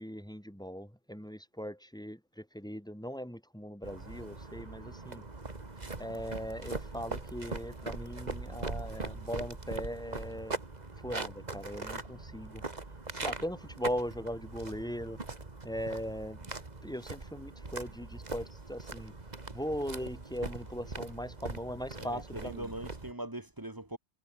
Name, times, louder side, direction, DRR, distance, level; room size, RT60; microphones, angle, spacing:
voice 1, 0.0-5.2 6.0-10.6 11.0-12.6 13.1-15.2 15.6-16.5 16.8-19.1 19.5-22.7, equal, 5° left, 4.6 m, -39 dB
sound 1, 3.8-23.1, right 3 dB, 35° right, 2.1 m, -41 dB
voice 2, 21.9-24.0, right 1 dB, 20° right, 1.5 m, -41 dB
omnidirectional pair, 1.2 m